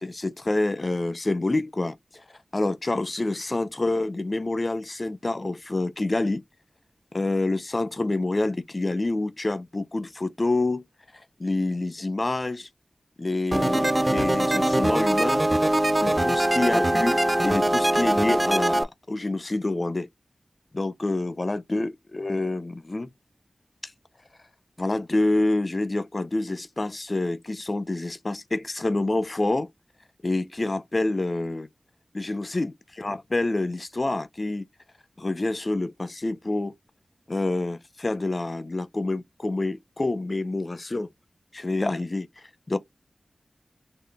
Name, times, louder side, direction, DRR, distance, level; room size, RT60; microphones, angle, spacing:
voice 1, 0.0-2.0 2.5-6.4 7.1-10.8 11.4-12.7 13.2-15.5 16.0-20.1 20.7-23.1 24.8-29.7 30.2-31.7 32.1-34.6 35.2-36.7 37.3-41.1 41.5-42.3 42.7-42.8, left 2 dB, 40° left, 0.4 m, -27 dB
sound 1, 13.5-18.8, right 1 dB, 25° right, 0.4 m, -22 dB
3.7 x 2.0 x 3.4 m
wide cardioid pair, 60°, 0 cm